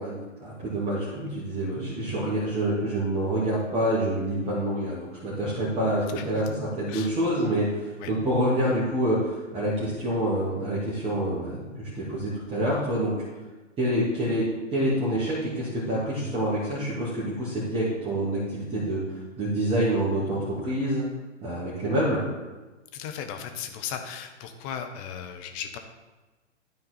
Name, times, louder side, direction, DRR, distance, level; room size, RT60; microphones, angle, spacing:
voice 1, 0.0-13.1 13.8-19.0 19.4-21.0 21.4-22.2, right 1 dB, 15° right, -8 dB, 2.2 m, -27 dB
voice 2, 22.9-25.8, left 8 dB, 30° left, 6 dB, 1.1 m, -36 dB
12.5 x 4.3 x 4.3 m, 1.2 s
figure-of-eight pair, 125°, 36 cm